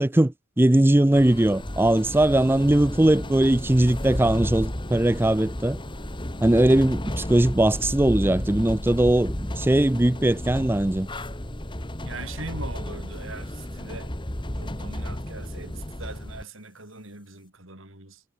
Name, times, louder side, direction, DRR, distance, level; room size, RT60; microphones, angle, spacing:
voice 1, 0.0-5.8 6.4-11.1, right 1 dB, 10° right, 0.4 m, -20 dB
sound 1, 1.1-16.4, left 1 dB, 20° left, 2.2 m, -33 dB
voice 2, 12.0-14.1 14.6-18.2, right 3 dB, 65° right, 6.3 m, -41 dB
head